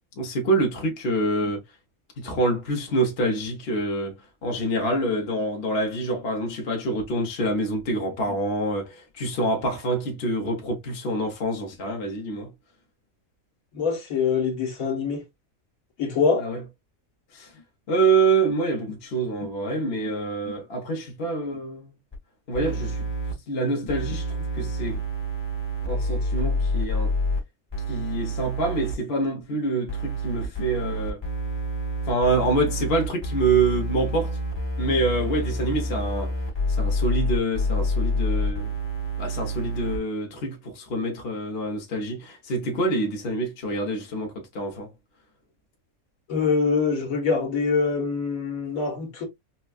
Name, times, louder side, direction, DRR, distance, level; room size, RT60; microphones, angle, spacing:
voice 1, 0.2-1.6 2.2-4.2 4.4-12.5 16.4-16.6 17.3-22.0 22.5-23.1 23.5-25.0 25.8-27.1 27.9-31.2 32.1-34.4 34.8-36.3 36.7-38.7 39.2-44.9, right 2 dB, 50° left, 1.2 m, -26 dB
voice 2, 13.7-15.2 16.0-16.4 46.3-49.3, left 5 dB, 75° left, 1.6 m, -24 dB
sound 1, 22.1-22.2 22.5-23.3 23.9-27.4 27.7-28.9 29.9-40.0, equal, 20° left, 1.2 m, -28 dB
4.4 x 2.3 x 2.3 m
omnidirectional pair, 1.5 m